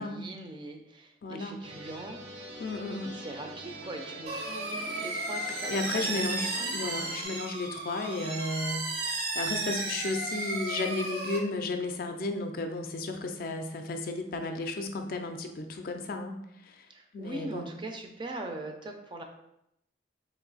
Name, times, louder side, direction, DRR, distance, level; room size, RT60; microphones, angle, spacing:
voice 1, 0.0-2.2 3.0-6.7 16.9-19.2, right 2 dB, 25° right, 3 dB, 0.4 m, -41 dB
voice 2, 1.2-1.6 2.6-3.2 5.7-16.9 17.1-17.7, left 2 dB, 55° left, 6 dB, 0.4 m, -34 dB
sound 1, 1.6-7.2, right 1 dB, 85° right, 0.9 m, -44 dB
sound 2, 4.3-11.4, right 2 dB, 60° right, 0.7 m, -34 dB
3.0 x 2.6 x 3.9 m, 0.80 s
head